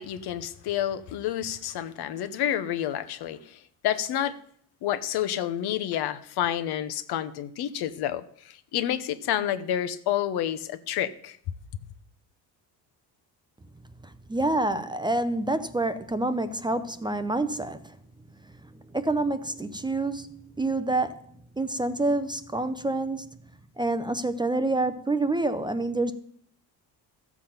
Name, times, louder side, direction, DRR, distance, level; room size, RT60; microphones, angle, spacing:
voice 1, 0.0-4.4 4.8-11.4, left 11 dB, 75° left, 0.9 m, -29 dB
voice 2, 14.3-18.0 18.9-21.2 21.6-23.3 23.8-26.1, right 2 dB, 10° right, 0.5 m, -27 dB
14.0 x 7.3 x 5.7 m
cardioid pair, 140°, 39 cm